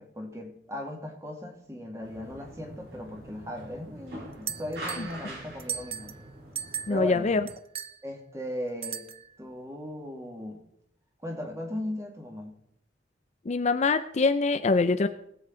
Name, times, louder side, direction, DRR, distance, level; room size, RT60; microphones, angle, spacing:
voice 1, 0.0-6.1 6.9-7.4 8.0-9.1 9.4-10.6 11.2-12.6, left 1 dB, 15° right, 2 dB, 2.1 m, -37 dB
sound 1, 2.0-7.5, right 1 dB, 65° right, 6.2 m, -44 dB
sound 2, 4.5-5.1 5.6-6.2 6.6-7.1 7.5-8.0 8.8-9.3, right 9 dB, 30° right, 0.5 m, -36 dB
voice 2, 6.9-7.4 13.5-15.1, left 3 dB, 40° left, 10 dB, 0.5 m, -24 dB
20.5 x 7.8 x 3.8 m, 0.73 s
head